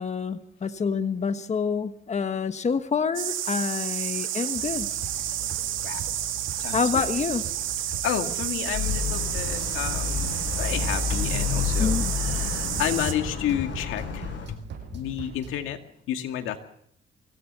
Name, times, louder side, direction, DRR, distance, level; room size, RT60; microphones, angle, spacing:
voice 1, 0.0-4.9 6.7-7.4 11.8-12.1 12.7-12.8, left 5 dB, 35° left, 9 dB, 1.3 m, -27 dB
sound 1, 3.1-13.1, right 11 dB, 85° right, 2.2 m, -30 dB
sound 2, 4.5-15.6, right 5 dB, 65° right, 7.1 m, -41 dB
voice 2, 6.6-7.1 8.0-14.6 14.9-15.8 16.1-16.6, left 11 dB, 90° left, 6 dB, 2.2 m, -31 dB
sound 3, 8.7-14.5, left 7 dB, 75° left, 7.1 m, -30 dB
25.0 x 18.0 x 6.9 m, 0.70 s
cardioid pair, 90°, 20 cm